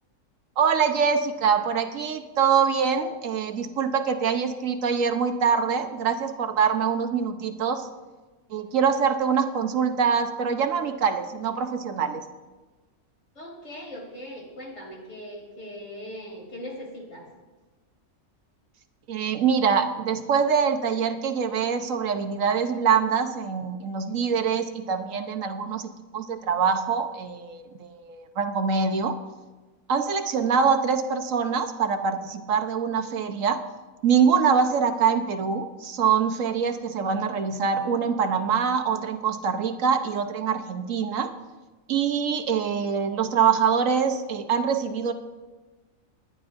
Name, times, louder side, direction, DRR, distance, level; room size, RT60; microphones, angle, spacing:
voice 1, 0.6-7.9 8.5-12.3 19.1-29.2 29.9-33.6 34.0-41.3 41.9-45.1, right 6 dB, 75° right, 6 dB, 1.2 m, -24 dB
voice 2, 13.4-17.3, equal, 65° left, -2 dB, 3.6 m, -40 dB
21.0 x 10.5 x 2.6 m, 1.2 s
omnidirectional pair, 1.4 m